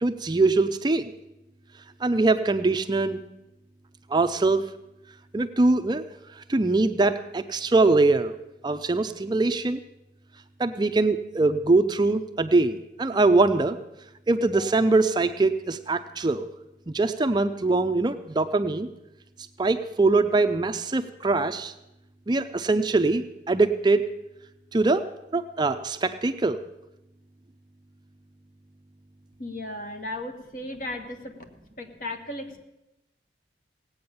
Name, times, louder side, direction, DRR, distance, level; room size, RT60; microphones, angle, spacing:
voice 1, 0.0-1.1 2.0-3.2 4.1-4.6 5.3-6.0 6.3-8.3 8.6-9.8 10.6-13.8 14.3-16.5 16.9-18.9 19.6-21.7 22.3-24.0 24.7-25.1 25.3-26.6, right 3 dB, 25° right, 9 dB, 0.5 m, -22 dB
voice 2, 29.4-31.3 31.8-32.6, left 1 dB, 50° left, 5 dB, 1.6 m, -35 dB
17.5 x 8.7 x 6.9 m, 0.91 s
head